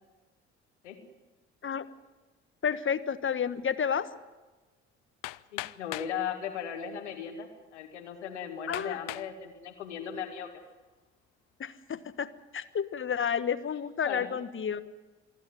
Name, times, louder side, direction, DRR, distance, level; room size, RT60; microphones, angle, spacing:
voice 1, 2.6-4.1 8.7-9.0 11.6-14.8, left 7 dB, 35° left, 12 dB, 1.4 m, -31 dB
Hammer, 5.2-6.2 7.1-7.2 7.8-7.9 8.7-9.3 9.9-10.3, left 21 dB, 65° left, 0.6 m, -39 dB
voice 2, 5.5-10.5 14.0-14.3, left 8 dB, 85° left, 5 dB, 2.0 m, -37 dB
26.5 x 11.5 x 9.5 m, 1.2 s
hypercardioid pair, 50°, 34 cm